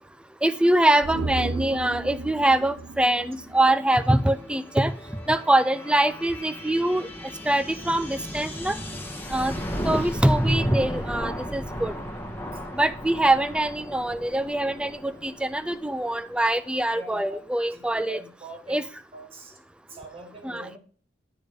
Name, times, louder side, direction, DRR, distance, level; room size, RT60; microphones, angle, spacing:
voice 1, 0.4-4.9 5.3-7.1 7.5-8.8 9.3-9.5 9.8-11.9 12.7-18.2 18.7-18.8 20.4-20.7, right 1 dB, 5° right, 14 dB, 0.3 m, -23 dB
sound 1, 1.0-4.4 4.7-4.8, right 3 dB, 75° right, 0.5 m, -35 dB
sound 2, 3.3-16.7, equal, 10° left, 1.2 m, -36 dB
voice 2, 16.9-17.4 17.7-18.8 19.1-19.6 19.9-20.8, right 1 dB, 30° right, 3 dB, 1.5 m, -42 dB
9.9 x 4.1 x 4.9 m, 0.42 s
head